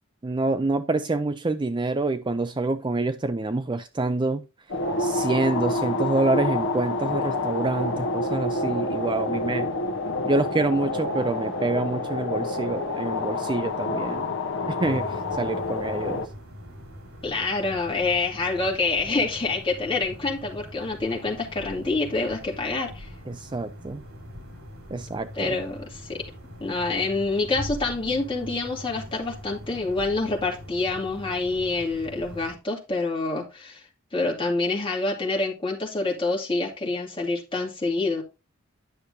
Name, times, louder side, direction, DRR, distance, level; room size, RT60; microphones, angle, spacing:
voice 1, 0.2-4.4 5.0-9.7 10.2-14.4 14.7-16.2 23.3-24.0 24.9-25.6, right 2 dB, 20° right, 0.4 m, -27 dB
sound 1, 4.7-16.3, left 2 dB, 60° left, 1.0 m, -28 dB
sound 2, 14.8-32.6, equal, 90° right, 3.6 m, -42 dB
voice 2, 17.2-23.1 25.3-26.2 26.6-33.8 34.1-38.2, left 3 dB, 25° left, 2.3 m, -27 dB
10.0 x 6.5 x 2.7 m
head